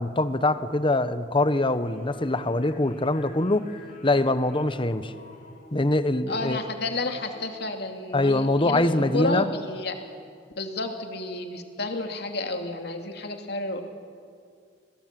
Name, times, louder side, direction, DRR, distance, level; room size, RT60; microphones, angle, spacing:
voice 1, 0.0-3.7 4.0-5.1 5.7-6.6 8.1-9.5, left 2 dB, 30° left, 12 dB, 1.1 m, -23 dB
sound 1, 1.7-7.5, left 1 dB, 50° left, 4.7 m, -48 dB
voice 2, 6.3-10.0 10.6-13.8, left 2 dB, 65° left, 4 dB, 2.8 m, -31 dB
29.5 x 22.0 x 7.7 m, 2.2 s
head